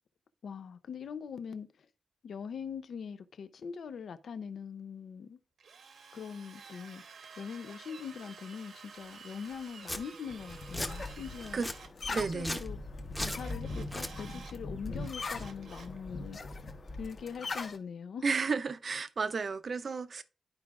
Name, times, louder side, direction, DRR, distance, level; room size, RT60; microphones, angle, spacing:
voice 1, 0.4-1.9 2.2-5.4 6.1-7.0 7.4-11.7 12.1-12.8 13.2-16.6 17.0-18.3, left 6 dB, 70° left, 0.6 m, -42 dB
Drill, 5.6-11.9 13.3-14.6 14.9-16.0, right 5 dB, 75° right, 1.1 m, -51 dB
Domestic sounds home sounds, 9.4-9.5 9.8-10.0 10.5-10.9 11.4-11.8 12.3-12.7 13.1-13.4 13.8-14.1, left 1 dB, 10° left, 0.9 m, -37 dB
sound 1, 10.3-17.8, left 3 dB, 45° left, 1.1 m, -40 dB
voice 2, 12.1-12.6 18.2-20.2, right 4 dB, 45° right, 0.6 m, -32 dB
11.5 x 4.8 x 2.4 m
wide cardioid pair, 115°, 0 cm